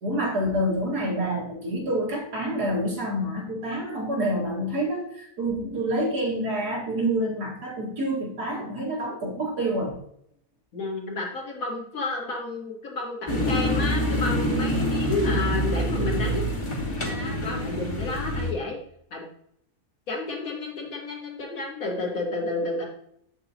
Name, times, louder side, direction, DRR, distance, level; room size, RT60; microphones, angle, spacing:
voice 1, 0.0-10.0, right 1 dB, 80° right, -2 dB, 2.7 m, -27 dB
voice 2, 10.7-16.5 17.0-18.8 19.1-19.2 20.1-22.9, left 3 dB, 60° left, -1 dB, 2.2 m, -31 dB
sound 1, 13.3-18.5, equal, 20° left, 1.3 m, -26 dB
8.1 x 6.7 x 2.9 m, 0.69 s
omnidirectional pair, 1.7 m